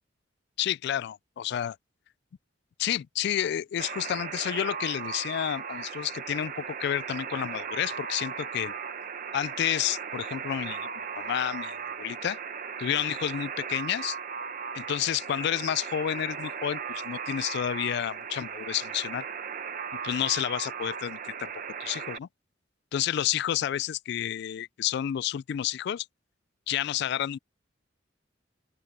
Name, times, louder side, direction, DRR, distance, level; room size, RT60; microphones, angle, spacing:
voice 1, 0.6-1.8 2.8-8.7 9.3-10.9 11.1-12.4 12.8-14.2 14.7-19.2 20.0-21.5 21.8-22.3 22.9-26.1 26.7-27.4, left 10 dB, 60° left, 0.3 m, -30 dB
Alarm, 3.8-22.2, right 6 dB, 50° right, 1.1 m, -37 dB
open air
head